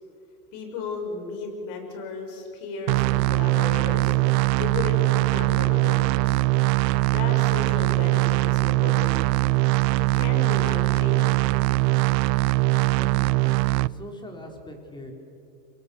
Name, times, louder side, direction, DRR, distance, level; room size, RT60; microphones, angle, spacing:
voice 1, 0.5-4.2 4.6-6.4 7.0-9.3 10.1-11.5, left 4 dB, 55° left, 4 dB, 6.2 m, -34 dB
sound 1, 2.9-13.9, right 21 dB, 75° right, 0.6 m, -21 dB
voice 2, 12.9-15.1, left 1 dB, 10° left, 3 dB, 4.1 m, -41 dB
28.0 x 22.5 x 7.0 m, 2.6 s
supercardioid pair, 125°, 49 cm